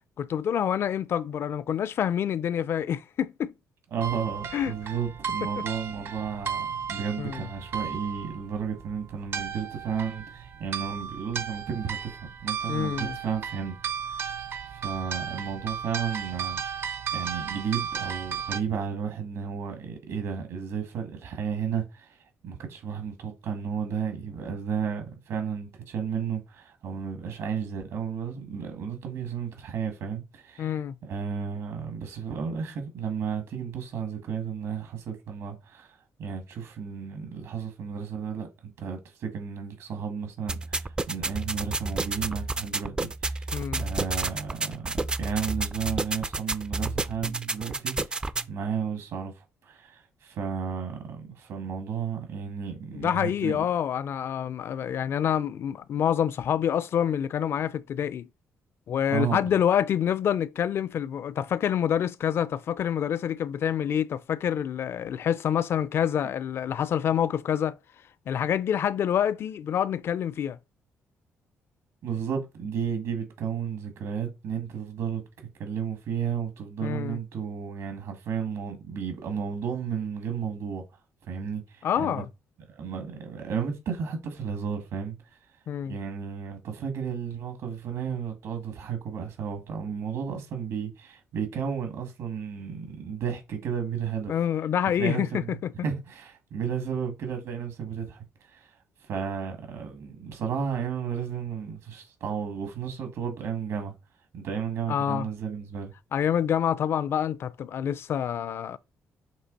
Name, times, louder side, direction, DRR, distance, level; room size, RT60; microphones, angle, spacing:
voice 1, 0.2-3.5 4.5-4.7 7.2-7.5 12.7-13.2 30.6-31.0 43.5-43.9 52.9-58.3 58.9-67.8 68.3-70.6 76.8-77.2 81.8-82.3 85.7-86.0 94.3-95.7 104.9-105.3 106.1-108.8, left 9 dB, 55° left, 0.4 m, -27 dB
voice 2, 3.9-13.7 14.0-14.4 14.7-16.6 17.1-22.2 22.4-30.7 31.0-43.5 43.8-48.2 48.5-53.6 59.1-59.6 72.0-80.8 81.3-82.2 82.7-85.2 85.9-94.3 95.0-98.7 99.0-103.9 104.3-105.9, right 7 dB, 75° right, 2.0 m, -33 dB
sound 1, 4.0-18.6, right 7 dB, 55° right, 0.6 m, -35 dB
sound 2, 40.5-48.5, right 3 dB, 20° right, 0.3 m, -30 dB
7.2 x 3.2 x 4.1 m
cardioid pair, 130°, 5 cm